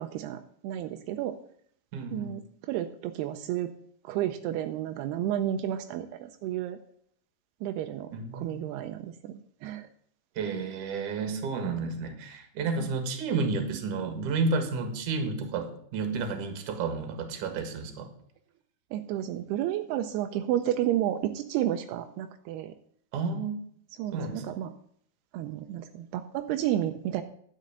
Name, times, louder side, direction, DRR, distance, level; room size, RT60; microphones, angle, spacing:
voice 1, 0.0-1.4 2.1-3.7 4.0-6.8 7.6-9.3 9.6-9.9 12.8-12.9 18.9-22.7 24.0-24.7 25.3-27.2, right 12 dB, 85° right, 8 dB, 2.6 m, -31 dB
voice 2, 1.9-2.4 8.1-8.6 10.4-18.1 23.1-23.6 24.1-24.4, right 4 dB, 60° right, 7 dB, 2.8 m, -31 dB
10.5 x 6.4 x 7.9 m, 0.64 s
omnidirectional pair, 4.6 m